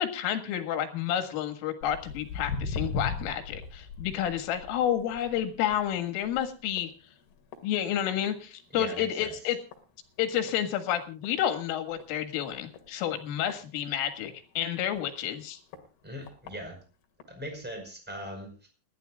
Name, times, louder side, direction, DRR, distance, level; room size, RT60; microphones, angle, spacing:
voice 1, 0.0-6.9 7.6-9.6 10.2-15.6, left 10 dB, 80° left, 7 dB, 4.3 m, -30 dB
Walk footsteps, 1.8-8.5 8.8-9.2 9.7-9.8 10.5-10.6 11.0-11.1 11.2-11.3 11.9-12.1 12.7-14.3 14.9-15.0 15.7-15.8 16.3-16.5 17.2-17.3, left 4 dB, 60° left, 3.7 m, -38 dB
voice 2, 8.7-9.3 16.0-16.8 17.3-18.7, equal, ahead, 3 dB, 4.5 m, -40 dB
29.5 x 11.5 x 2.3 m, 0.34 s
omnidirectional pair, 5.7 m